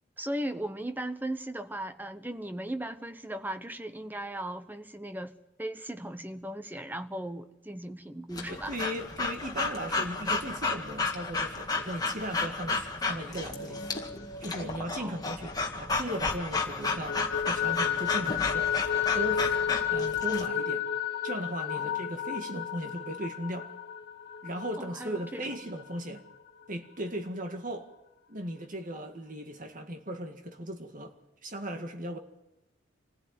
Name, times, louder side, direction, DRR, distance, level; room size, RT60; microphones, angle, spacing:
voice 1, 0.2-5.3 5.6-8.7 15.0-15.2 21.7-22.1 24.8-25.5, right 1 dB, 10° right, 1.0 m, -37 dB
Breathing / Dog, 8.3-20.5, left 3 dB, 20° left, 1.9 m, -33 dB
voice 2, 8.5-13.9 14.4-18.7 19.1-19.6 19.9-20.8 21.2-23.7 24.4-26.2 26.7-27.9 28.3-31.1 31.4-32.2, right 1 dB, 45° right, 2.0 m, -37 dB
sound 1, 13.3-16.2 16.5-26.0, left 8 dB, 60° left, 2.1 m, -33 dB
26.5 x 16.0 x 9.6 m
head